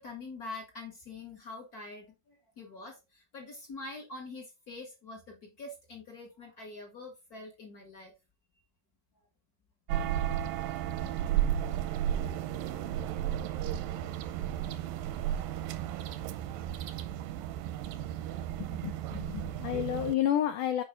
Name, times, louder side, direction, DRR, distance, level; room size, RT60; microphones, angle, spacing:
voice 1, 0.0-8.1, left 3 dB, 40° left, 1.3 m, -45 dB
sound 1, 9.9-20.1, right 11 dB, 75° right, 2.1 m, -33 dB
voice 2, 18.6-20.8, left 11 dB, 85° left, 1.8 m, -31 dB
7.4 x 5.4 x 3.8 m
omnidirectional pair, 4.6 m